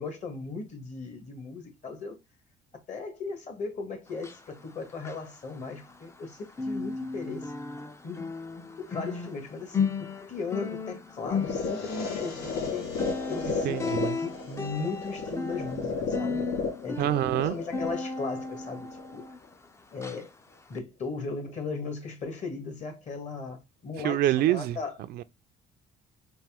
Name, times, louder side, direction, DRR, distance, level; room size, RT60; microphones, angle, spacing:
voice 1, 0.0-2.2 2.9-7.5 8.0-8.3 8.8-13.0 13.3-16.5 16.8-17.0 17.4-18.9 19.1-19.2 19.9-20.3 20.7-24.9, left 4 dB, 45° left, 1.7 m, -37 dB
sound 1, 4.1-6.3 6.5-19.6 20.0-20.2 20.7-20.8, left 4 dB, 15° left, 0.5 m, -35 dB
sound 2, 11.2-19.2, left 4 dB, 80° left, 1.4 m, -34 dB
voice 2, 13.6-14.2 17.0-17.6 24.0-24.8 25.1-25.2, right 13 dB, 70° right, 0.4 m, -26 dB
4.2 x 2.6 x 3.5 m
cardioid pair, 110°, 17 cm